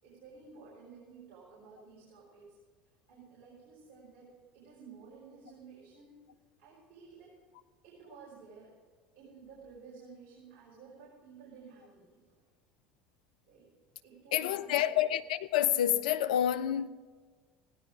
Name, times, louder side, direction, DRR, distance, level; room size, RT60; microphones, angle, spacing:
voice 1, 0.0-2.6 3.1-6.2 6.6-7.4 7.8-8.7 9.2-12.2 13.5-13.7 14.0-15.0, right 5 dB, 50° right, 5.3 m, -53 dB
voice 2, 14.3-16.9, left 11 dB, 65° left, 0.6 m, -28 dB
16.0 x 10.5 x 5.1 m
figure-of-eight pair, 65°, 5 cm